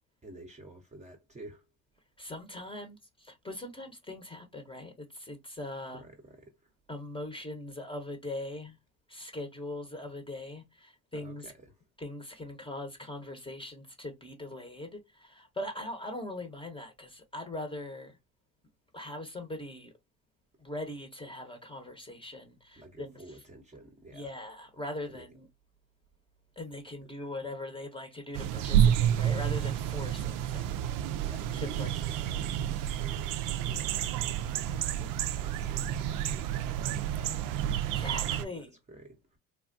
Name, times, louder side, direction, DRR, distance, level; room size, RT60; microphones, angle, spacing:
voice 1, 0.2-1.6 5.9-6.7 11.1-11.8 22.8-24.3 25.1-25.3 27.2-27.3 31.2-34.7 35.3-37.4 38.5-39.4, right 1 dB, 15° right, 0.8 m, -51 dB
voice 2, 2.2-6.0 6.9-8.8 9.1-11.5 12.0-18.2 18.9-19.9 20.6-23.1 24.1-25.5 26.6-32.1 34.7-35.2 37.7-38.8, left 1 dB, 15° left, 0.9 m, -41 dB
sound 1, 28.3-38.5, right 10 dB, 55° right, 0.5 m, -30 dB
3.4 x 2.2 x 2.5 m
hypercardioid pair, 75°, 41 cm